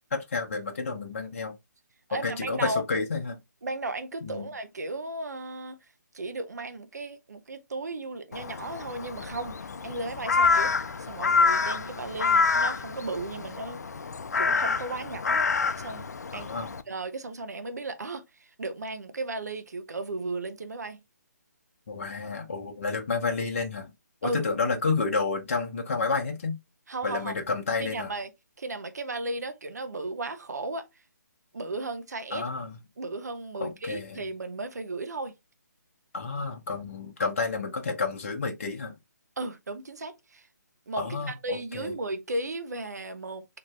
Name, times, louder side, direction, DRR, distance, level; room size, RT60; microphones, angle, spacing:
voice 1, 0.1-1.5 2.2-3.4 4.2-4.5 16.3-16.7 21.9-23.9 24.2-26.6 27.0-28.1 32.3-32.7 33.6-34.2 36.1-38.9 41.0-41.9, left 4 dB, 45° left, 0.9 m, -30 dB
voice 2, 2.1-2.8 3.6-5.9 6.1-10.7 11.0-13.8 14.4-15.5 15.8-21.0 24.2-24.4 26.9-27.4 27.8-28.3 28.6-30.9 31.5-32.5 33.0-35.3 39.4-40.5 40.9-43.6, right 2 dB, 60° right, 0.9 m, -35 dB
Crow, 8.3-16.8, left 4 dB, 60° left, 0.4 m, -27 dB
4.3 x 2.9 x 3.1 m
figure-of-eight pair, 145°, 10 cm